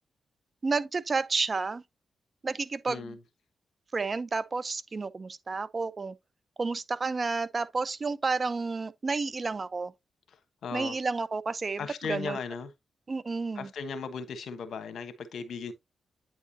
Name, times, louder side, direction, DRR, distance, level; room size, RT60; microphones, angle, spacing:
voice 1, 0.6-1.8 2.4-3.2 3.9-6.1 6.6-9.9 10.7-12.4 13.1-13.7, right 4 dB, 45° right, 0.7 m, -31 dB
voice 2, 2.9-3.2 10.3-10.4 10.6-11.0 11.8-12.7 13.5-15.7, left 5 dB, 75° left, 1.2 m, -37 dB
8.9 x 4.7 x 2.8 m
supercardioid pair, 45°, 0 cm